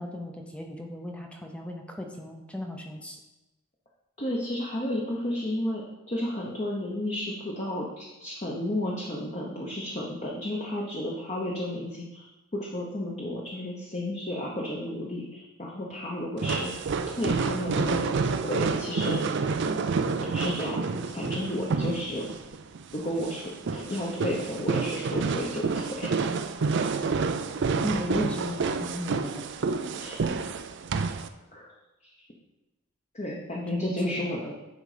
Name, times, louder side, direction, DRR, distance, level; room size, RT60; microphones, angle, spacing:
voice 1, 0.0-3.2 27.8-29.5 33.5-34.3, left 1 dB, 5° left, 2 dB, 0.6 m, -35 dB
voice 2, 4.2-12.3 12.5-16.7 17.1-18.1 18.4-19.2 20.2-20.9 21.1-22.3 22.9-26.1 29.9-30.2 31.5-31.7 33.1-34.5, left 1 dB, 30° left, -3 dB, 0.9 m, -32 dB
sound 1, 16.4-31.3, right 4 dB, 50° right, 0.4 m, -29 dB
10.0 x 4.0 x 5.0 m, 1.0 s
head